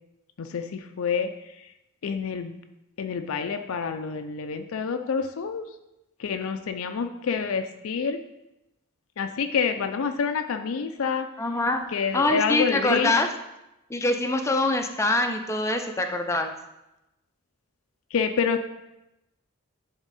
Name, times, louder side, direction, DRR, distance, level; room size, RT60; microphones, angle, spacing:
voice 1, 0.4-1.3 2.0-2.6 3.0-5.7 6.2-8.2 9.2-11.3 11.9-13.1 18.1-18.7, left 6 dB, 70° left, 7 dB, 0.4 m, -27 dB
voice 2, 11.4-13.3 13.9-16.5, left 2 dB, 15° left, 5 dB, 0.4 m, -24 dB
10.5 x 3.6 x 4.1 m, 0.92 s
head